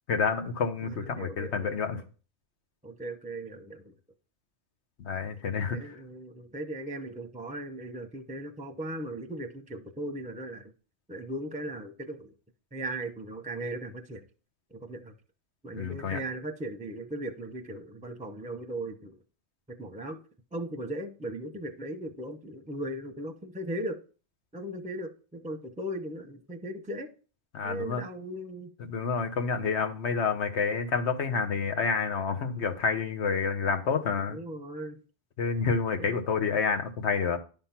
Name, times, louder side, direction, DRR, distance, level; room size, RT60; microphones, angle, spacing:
voice 1, 0.1-2.0 5.0-6.0 15.7-16.2 27.5-28.0 28.9-34.4 35.4-37.4, left 5 dB, 85° left, 1.3 m, -29 dB
voice 2, 0.8-2.0 2.8-3.9 5.7-10.7 11.1-12.3 12.7-14.2 14.7-15.1 15.6-19.2 19.7-20.2 20.5-24.0 24.5-27.1 27.6-28.7 34.3-35.0 36.0-36.2, right 1 dB, 10° right, 0.7 m, -38 dB
10.5 x 3.7 x 5.8 m
omnidirectional pair, 1.1 m